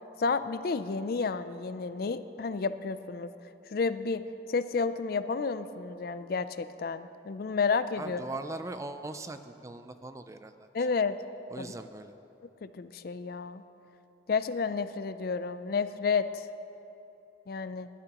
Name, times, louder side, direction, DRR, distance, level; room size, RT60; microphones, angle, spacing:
voice 1, 0.2-3.3 3.7-4.2 4.5-8.2 10.7-11.2 11.6-11.7 12.6-13.6 14.3-16.5 17.5-17.9, left 5 dB, 50° left, 13 dB, 0.4 m, -31 dB
voice 2, 8.0-10.9 11.5-12.1, right 2 dB, 15° right, 10 dB, 0.4 m, -40 dB
21.0 x 12.5 x 3.0 m, 3.0 s
head